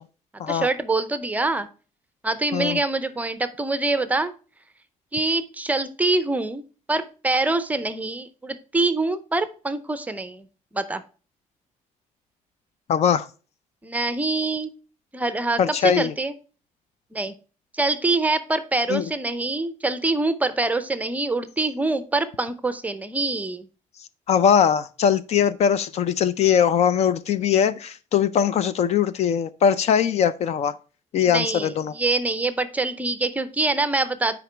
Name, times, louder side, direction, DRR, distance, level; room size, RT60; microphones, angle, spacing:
voice 1, 0.5-1.7 2.2-4.3 5.1-10.5 10.7-11.0 13.8-14.7 15.1-16.3 17.1-17.3 17.7-23.7 31.2-34.4, right 2 dB, 10° right, 0.5 m, -25 dB
voice 2, 12.9-13.3 15.6-16.1 18.9-19.1 24.3-30.7 31.1-31.9, left 8 dB, 50° left, 0.4 m, -21 dB
8.9 x 5.1 x 3.3 m
cardioid pair, 170°, 14 cm